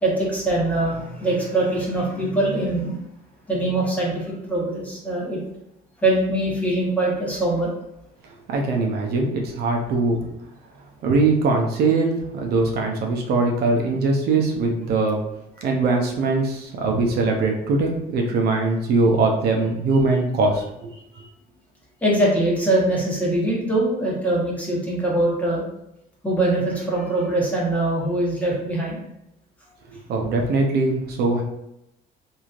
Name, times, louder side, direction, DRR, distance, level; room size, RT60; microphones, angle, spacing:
voice 1, 0.0-3.0 3.5-5.4 6.0-7.7 21.1-21.3 22.0-25.6 26.2-29.0, right 1 dB, 10° left, -5 dB, 1.1 m, -22 dB
voice 2, 8.5-10.3 11.0-15.2 15.6-20.9 29.9-31.4, right 3 dB, 70° right, 1 dB, 0.6 m, -21 dB
3.1 x 2.6 x 2.4 m, 0.82 s
cardioid pair, 110°, 17 cm